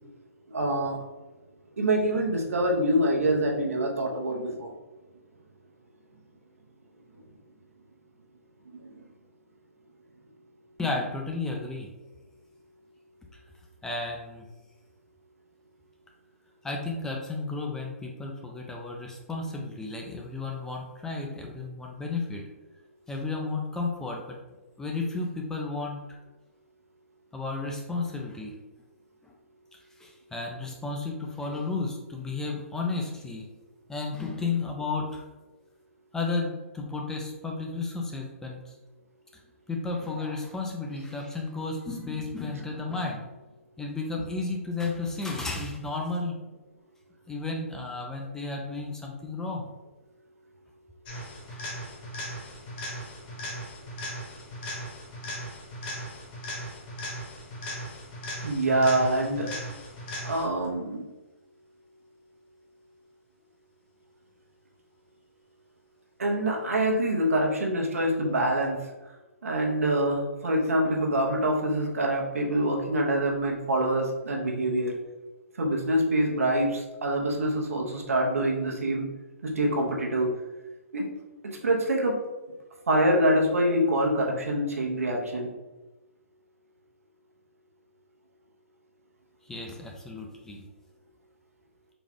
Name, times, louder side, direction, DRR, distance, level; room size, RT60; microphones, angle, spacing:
voice 1, 0.5-1.0 1.8-4.7 58.4-59.5 60.2-61.0 66.2-68.8 69.4-74.9 75.6-79.1 79.4-80.3 80.9-81.0 81.4-82.2 82.9-85.5, right 1 dB, 75° right, 0 dB, 0.9 m, -25 dB
voice 2, 10.8-11.9 13.8-14.5 16.6-22.4 23.1-24.4 24.8-26.0 27.3-28.5 30.0-33.4 33.9-35.2 36.1-38.7 39.7-43.3 43.8-46.4 47.3-49.7 51.5-51.6 89.5-90.6, left 3 dB, 5° left, 0 dB, 0.4 m, -33 dB
sound 1, 51.0-60.7 68.6-68.7, equal, 40° left, 1.1 m, -38 dB
4.0 x 2.4 x 3.5 m, 1.1 s
hypercardioid pair, 135°, 8 cm